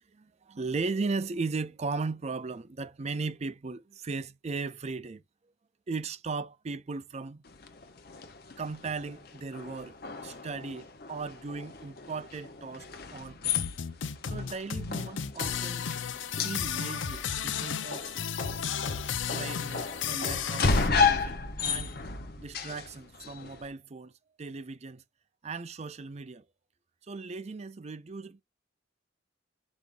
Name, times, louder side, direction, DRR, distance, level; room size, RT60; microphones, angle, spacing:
voice 1, 0.1-5.2 5.9-7.4 8.6-9.9 10.2-13.6 14.3-15.9 16.4-18.2 19.3-21.9 22.4-24.1 24.4-25.0 25.4-26.4 27.1-28.4, right 4 dB, 35° right, 0.5 m, -37 dB
sound 1, 7.5-23.7, left 4 dB, 55° left, 0.8 m, -34 dB
sound 2, 13.4-20.9, left 7 dB, 85° left, 0.6 m, -33 dB
5.4 x 3.5 x 2.5 m
head